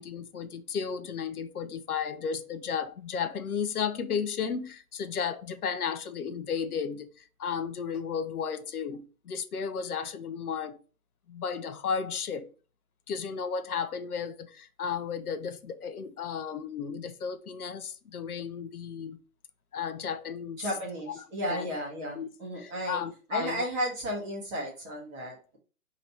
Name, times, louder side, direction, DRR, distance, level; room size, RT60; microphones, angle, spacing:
voice 1, 0.0-10.8 11.3-12.5 13.1-19.2 19.7-20.7 21.5-21.7 22.1-22.3 22.6-23.6, left 6 dB, 80° left, 0.7 m, -34 dB
voice 2, 20.6-23.0 23.3-25.6, equal, 15° right, 1.2 m, -34 dB
3.2 x 2.9 x 4.3 m
hypercardioid pair, 140°, 44 cm